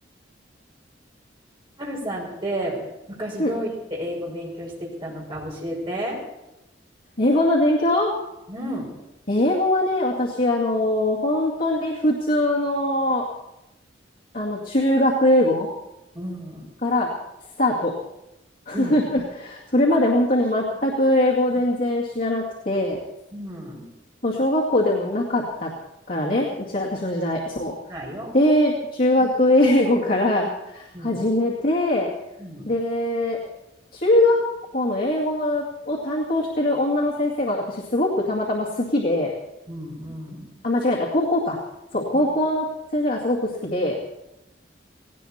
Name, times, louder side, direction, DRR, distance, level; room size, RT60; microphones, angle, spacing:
voice 1, 1.8-2.8 3.1-6.2 8.5-8.9 16.1-16.6 18.7-19.0 19.9-20.1 20.7-20.8 23.3-23.9 26.3-26.4 27.9-28.3 29.2-29.3 30.9-31.2 32.4-32.7 39.7-40.5 42.1-42.2, equal, 25° right, -3 dB, 5.4 m, -32 dB
voice 2, 7.2-8.1 9.3-13.2 14.3-15.7 16.8-17.1 17.6-17.9 18.7-23.0 24.2-25.7 26.1-26.5 26.7-27.7 28.3-32.1 32.7-33.4 33.9-34.4 34.7-39.3 40.6-41.6 41.9-42.6 42.9-44.0, left 1 dB, 50° left, -4 dB, 2.2 m, -21 dB
18.5 x 17.5 x 4.3 m, 0.93 s
head